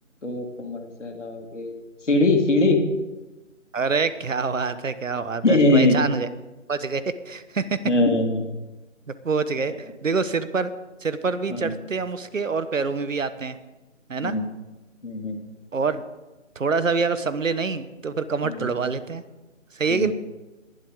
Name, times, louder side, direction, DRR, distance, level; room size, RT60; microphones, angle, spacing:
voice 1, 0.2-1.7 2.1-2.9 5.4-6.1 7.9-8.6 11.6-11.7 14.2-14.5 15.0-15.4 18.4-18.6 19.9-20.1, left 2 dB, 65° left, 3 dB, 2.6 m, -21 dB
voice 2, 3.7-6.3 6.7-7.8 9.2-10.7 11.0-13.6 14.1-14.4 15.7-16.0 16.5-19.2 19.7-20.1, right 4 dB, 75° right, 13 dB, 1.2 m, -26 dB
20.5 x 11.5 x 3.7 m, 1.1 s
figure-of-eight pair, 175°, 39 cm